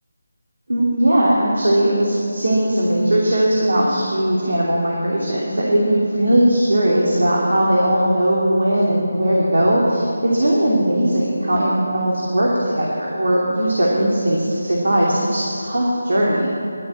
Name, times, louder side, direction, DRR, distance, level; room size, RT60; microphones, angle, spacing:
voice 1, 0.7-16.5, right 1 dB, 80° right, -4 dB, 2.9 m, -18 dB
12.0 x 11.0 x 8.6 m, 2.8 s
figure-of-eight pair, 170°, 0 cm